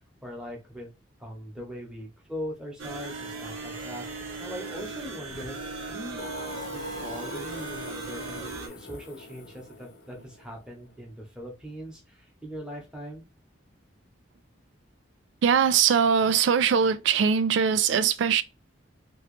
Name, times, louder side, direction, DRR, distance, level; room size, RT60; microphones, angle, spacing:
voice 1, 0.2-0.9 1.2-6.3 6.7-13.2, equal, 5° right, 1.0 m, -40 dB
sound 1, 2.8-8.7, right 3 dB, 85° right, 1.0 m, -38 dB
Singing, 6.2-10.9, left 1 dB, 55° left, 0.6 m, -42 dB
voice 2, 15.4-18.4, right 7 dB, 70° right, 0.3 m, -21 dB
3.0 x 3.0 x 3.1 m
head